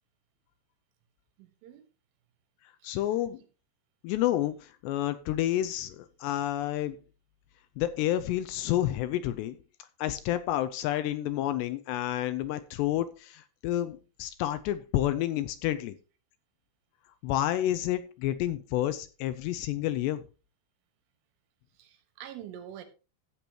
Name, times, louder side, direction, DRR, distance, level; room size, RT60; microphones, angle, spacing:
voice 1, 1.4-1.9 2.8-3.5 8.0-8.3 21.8-22.8, right 10 dB, 85° right, 3.9 m, -47 dB
voice 2, 2.8-3.4 4.0-7.0 7.8-9.6 10.0-16.0 17.2-20.2, left 13 dB, 80° left, 2.6 m, -29 dB
14.0 x 8.6 x 2.9 m
omnidirectional pair, 5.5 m